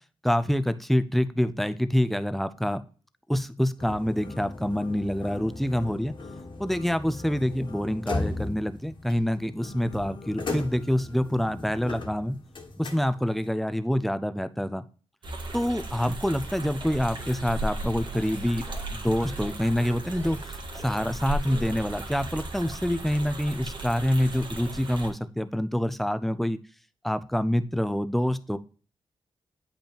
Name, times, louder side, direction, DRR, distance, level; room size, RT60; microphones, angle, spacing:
voice 1, 0.2-2.8 3.3-6.1 6.6-12.4 12.8-14.8 15.5-18.6 18.9-20.4 20.8-26.6 27.0-28.6, equal, ahead, 12 dB, 0.4 m, -26 dB
sound 1, 3.8-13.5, left 2 dB, 55° left, 1.5 m, -38 dB
sound 2, 15.2-25.1, right 1 dB, 55° right, 1.5 m, -36 dB
sound 3, 16.4-20.5 20.8-21.1 21.3-22.2, right 2 dB, 25° right, 1.9 m, -48 dB
8.6 x 5.3 x 2.9 m, 0.39 s
wide cardioid pair, 115°, 10 cm